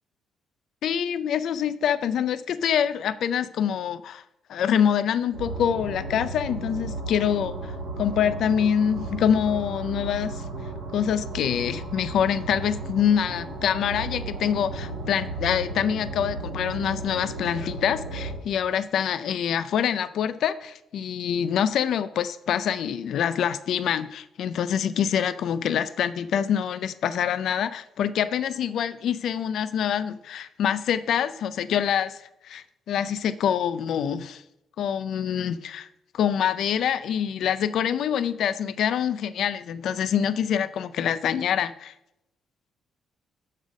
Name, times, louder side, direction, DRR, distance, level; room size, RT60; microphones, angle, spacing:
voice 1, 0.8-4.2 4.5-7.7 8.0-10.4 10.9-32.2 32.4-34.4 34.8-35.9 36.1-41.9, left 8 dB, 70° left, 13 dB, 0.4 m, -25 dB
sound 1, 5.3-18.3, right 2 dB, 90° right, 2.0 m, -34 dB
6.2 x 4.0 x 6.2 m, 0.86 s
cardioid pair, 90°, 0 cm